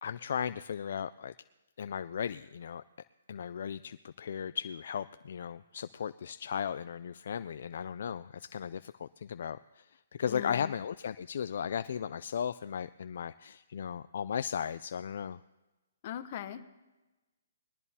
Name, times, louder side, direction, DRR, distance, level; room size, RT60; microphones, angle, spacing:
voice 1, 0.0-1.3 1.8-2.8 3.3-9.9 10.2-15.4, left 8 dB, 60° left, 13 dB, 0.3 m, -36 dB
voice 2, 10.3-10.7 16.0-16.7, left 10 dB, 40° left, 9 dB, 0.9 m, -40 dB
21.5 x 12.5 x 2.8 m, 1.1 s
hypercardioid pair, 160°, 0 cm